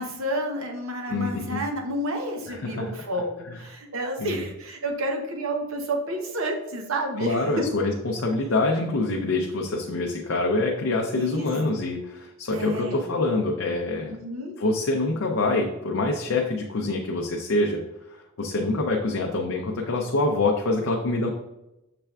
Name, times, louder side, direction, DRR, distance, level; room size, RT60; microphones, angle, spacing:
voice 1, 0.0-7.6 11.2-11.5 12.5-13.0 14.1-14.5, right 1 dB, 80° right, 2 dB, 0.8 m, -30 dB
voice 2, 1.1-1.6 2.5-3.0 3.4-3.6 4.2-4.5 7.2-14.2 14.6-21.3, left 2 dB, 70° left, 0 dB, 0.5 m, -26 dB
6.7 x 3.3 x 2.3 m, 0.91 s
head